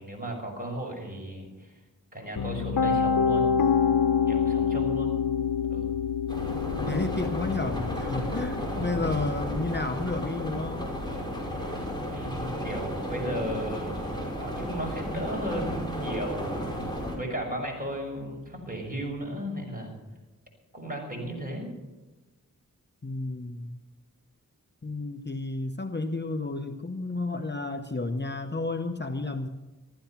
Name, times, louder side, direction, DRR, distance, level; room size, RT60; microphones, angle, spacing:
voice 1, 0.0-1.7 2.1-3.6 4.3-5.1 5.7-5.9 12.1-20.0 20.7-21.7, right 1 dB, 25° right, 0 dB, 6.0 m, -35 dB
Piano, 2.4-14.3, left 7 dB, 80° left, 1.1 m, -29 dB
sound 1, 6.3-17.2, equal, 10° left, 5.5 m, -33 dB
voice 2, 6.8-10.9 23.0-23.8 24.8-29.5, left 3 dB, 30° left, 7 dB, 0.9 m, -31 dB
14.5 x 14.0 x 5.8 m, 1.1 s
wide cardioid pair, 55°, 34 cm